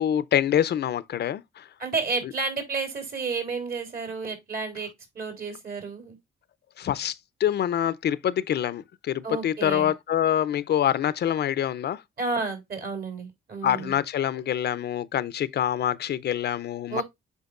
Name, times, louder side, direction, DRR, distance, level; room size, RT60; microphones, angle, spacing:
voice 1, 0.0-1.7 6.8-12.0 13.6-17.0, left 10 dB, 55° left, 0.5 m, -26 dB
voice 2, 1.8-4.9 5.2-6.2 9.2-9.9 12.2-14.0 16.9-17.0, right 4 dB, 50° right, 3.5 m, -31 dB
8.1 x 5.0 x 2.4 m
cardioid pair, 90°, 20 cm